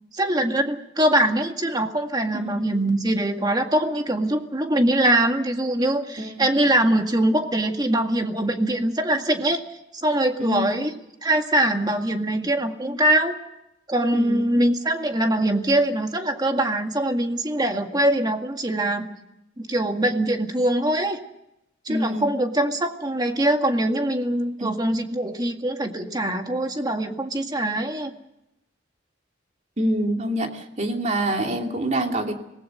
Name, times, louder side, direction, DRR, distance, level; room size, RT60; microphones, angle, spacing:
voice 1, 0.1-9.6 10.0-10.9 11.2-13.3 13.9-19.1 19.6-21.2 21.9-28.1, right 1 dB, 20° right, 5 dB, 1.9 m, -23 dB
voice 2, 2.3-2.8 6.2-6.5 10.4-10.8 14.1-14.5 21.9-22.3 24.6-24.7 29.8-32.3, right 1 dB, 35° right, 3 dB, 2.8 m, -26 dB
26.0 x 19.5 x 6.6 m, 0.86 s
head